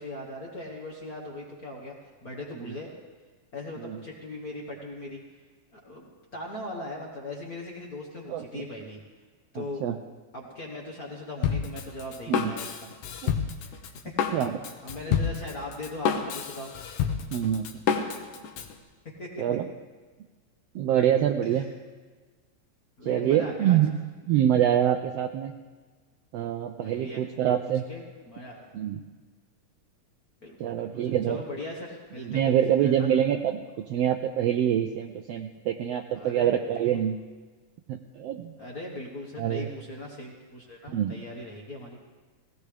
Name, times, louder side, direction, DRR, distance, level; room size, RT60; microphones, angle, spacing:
voice 1, 0.0-1.9 2.2-2.9 3.5-5.4 5.7-9.0 9.5-9.8 10.3-12.9 13.7-14.4 14.8-16.7 19.2-19.3 21.4-21.7 23.0-23.8 26.8-27.2 27.9-28.7 30.4-33.1 36.1-37.0 38.6-42.0, left 1 dB, 45° left, -2 dB, 1.2 m, -39 dB
voice 2, 8.3-8.6 9.5-10.0 12.3-12.5 13.2-13.3 14.3-14.6 17.3-17.7 19.4-19.6 20.7-21.7 23.0-23.9 24.3-25.5 26.3-27.8 28.7-29.0 30.6-31.4 32.2-37.2 37.9-38.5 39.4-39.7 40.9-41.1, right 10 dB, 85° right, 5 dB, 1.4 m, -25 dB
Drum kit, 11.4-18.7, left 7 dB, 85° left, 2.5 m, -29 dB
18.0 x 17.0 x 3.4 m, 1.4 s
omnidirectional pair, 3.4 m